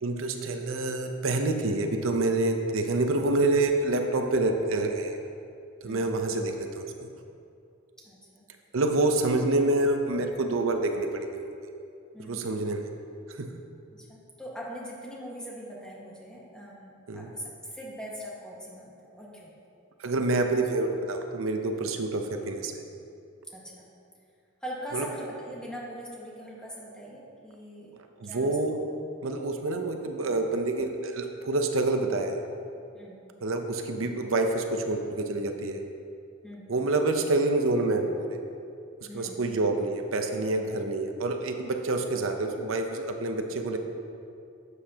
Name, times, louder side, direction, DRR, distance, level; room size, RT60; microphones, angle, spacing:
voice 1, 0.0-5.2 5.8-6.9 8.7-11.5 12.3-12.8 13.3-13.5 17.1-17.3 20.0-22.8 24.9-25.1 28.2-28.7 29.2-32.4 33.4-35.8 36.7-38.3 39.1-43.8, right 2 dB, 85° right, 5 dB, 0.7 m, -27 dB
voice 2, 5.8-6.2 8.0-8.4 12.1-12.5 13.9-19.5 23.5-23.9 24.6-27.9 28.2-28.6 32.9-33.1 36.4-36.7 39.0-39.5, equal, 5° left, -5 dB, 1.5 m, -41 dB
11.5 x 8.1 x 2.8 m, 2.6 s
head